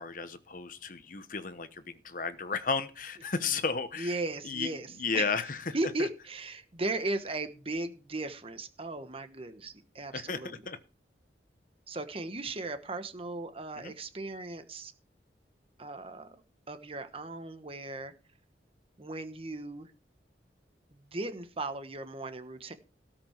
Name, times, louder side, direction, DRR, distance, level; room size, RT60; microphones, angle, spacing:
voice 1, 0.0-4.1 4.4-4.7 5.0-5.6 10.1-10.8 13.8-13.9, left 5 dB, 50° left, 11 dB, 1.0 m, -33 dB
voice 2, 4.0-5.3 5.7-10.7 11.9-14.9 15.8-16.4 16.7-18.1 19.0-19.9 20.9-22.7, right 2 dB, 35° right, 9 dB, 1.2 m, -37 dB
18.0 x 6.1 x 4.5 m, 0.34 s
head